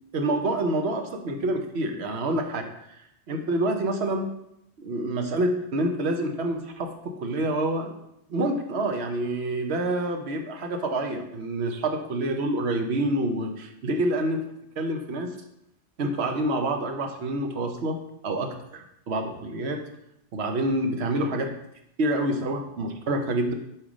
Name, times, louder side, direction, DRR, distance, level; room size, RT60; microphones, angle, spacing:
voice 1, 0.1-2.7 3.3-4.3 4.8-7.9 8.3-14.4 14.8-15.4 16.0-18.0 18.2-19.8 20.3-21.5 22.0-23.5, right 1 dB, 75° right, 5 dB, 1.1 m, -27 dB
5.6 x 4.5 x 5.0 m, 0.79 s
omnidirectional pair, 1.1 m